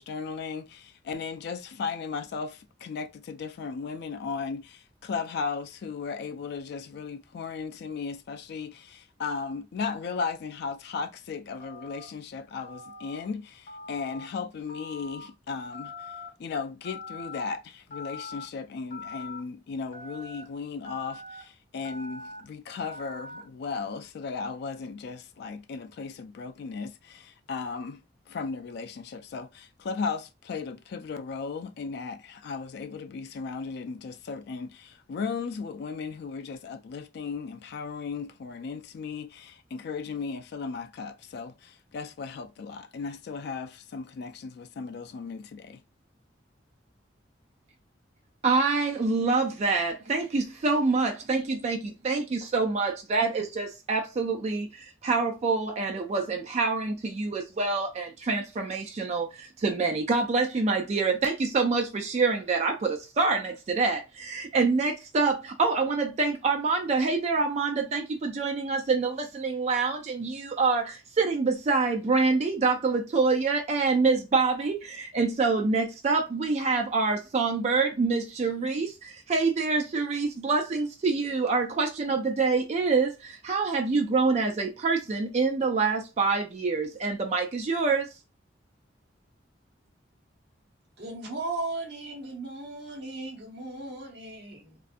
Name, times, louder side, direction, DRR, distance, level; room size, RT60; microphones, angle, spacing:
voice 1, 0.0-16.1 16.4-28.0 28.3-45.8, left 5 dB, 60° left, 0.3 m, -36 dB
Telephone, 11.6-12.1 12.6-13.2 13.7-14.3 14.7-15.3 15.7-16.3 16.8-17.4 17.9-18.5 18.9-19.4 19.9-20.4 20.8-21.4 21.8-22.4 22.8-23.4, left 2 dB, 45° left, 0.8 m, -42 dB
voice 2, 48.4-88.1, right 4 dB, 35° right, 0.3 m, -26 dB
voice 3, 91.0-94.8, right 2 dB, 60° right, 1.1 m, -36 dB
2.5 x 2.3 x 2.5 m
head